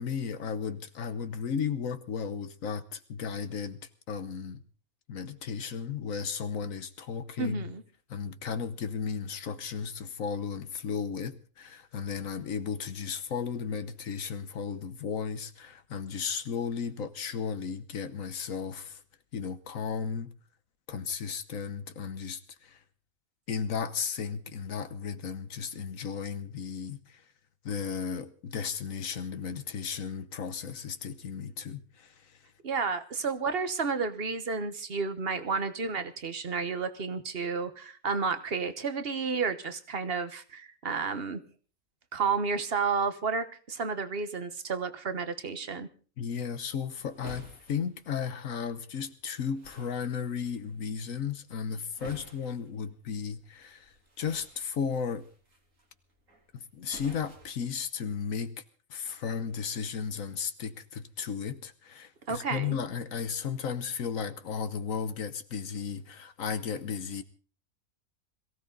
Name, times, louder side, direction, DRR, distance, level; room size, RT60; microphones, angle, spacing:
voice 1, 0.0-3.8 4.1-4.6 5.1-7.7 8.1-19.0 19.3-20.3 20.9-22.8 23.5-27.2 27.6-32.4 46.2-55.3 56.5-58.5 58.9-67.2, left 6 dB, 70° left, 1.4 m, -35 dB
voice 2, 7.4-7.8 32.6-41.4 42.1-45.9 62.3-62.8, right 5 dB, 45° right, 1.4 m, -31 dB
sound 1, 46.4-58.4, right 1 dB, 65° right, 3.6 m, -53 dB
22.0 x 16.0 x 3.9 m
omnidirectional pair, 1.5 m